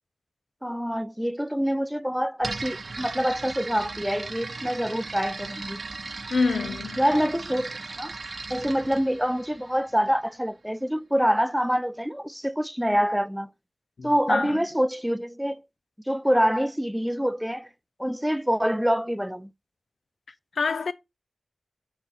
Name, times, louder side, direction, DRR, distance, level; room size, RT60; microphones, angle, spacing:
voice 1, 0.6-5.8 7.0-8.1 8.5-13.5 14.0-15.6 16.1-17.7 18.0-19.5, equal, 5° right, 0.4 m, -26 dB
sound 1, 2.4-10.2, right 3 dB, 55° right, 0.7 m, -37 dB
voice 2, 6.3-7.0 14.0-14.6 20.6-20.9, left 4 dB, 75° left, 0.6 m, -27 dB
5.9 x 4.0 x 5.9 m
wide cardioid pair, 80°, 0 cm